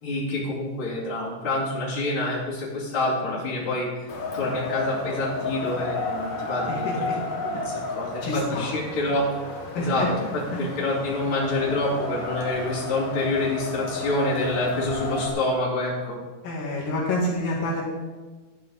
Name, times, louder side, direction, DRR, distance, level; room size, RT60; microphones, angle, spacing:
voice 1, 0.0-7.1 7.4-16.2, left 2 dB, 40° left, -6 dB, 3.4 m, -27 dB
Wind, 4.1-15.3, left 3 dB, 60° left, 2.5 m, -32 dB
voice 2, 6.7-7.2 8.2-8.7 9.7-10.1 10.5-10.6 16.4-17.8, left 1 dB, 80° left, -5 dB, 3.7 m, -28 dB
11.5 x 9.1 x 4.1 m, 1.3 s
omnidirectional pair, 3.9 m